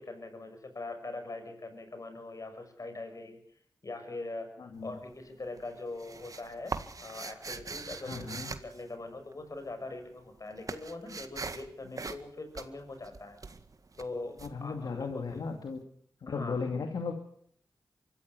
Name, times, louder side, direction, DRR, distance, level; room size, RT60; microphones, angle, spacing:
voice 1, 0.0-3.4 3.8-4.5 4.8-13.4 14.0-15.4 16.3-16.6, left 2 dB, 55° left, 7 dB, 6.9 m, -42 dB
voice 2, 4.6-4.9 8.0-8.5 11.8-12.0 14.4-15.8 16.2-17.1, left 4 dB, 90° left, 5 dB, 2.5 m, -36 dB
sound 1, 4.7-5.3 5.6-9.6 9.9-15.5, right 4 dB, 55° right, 1.9 m, -42 dB
24.5 x 15.0 x 8.3 m, 0.65 s
cardioid pair, 50°, 7 cm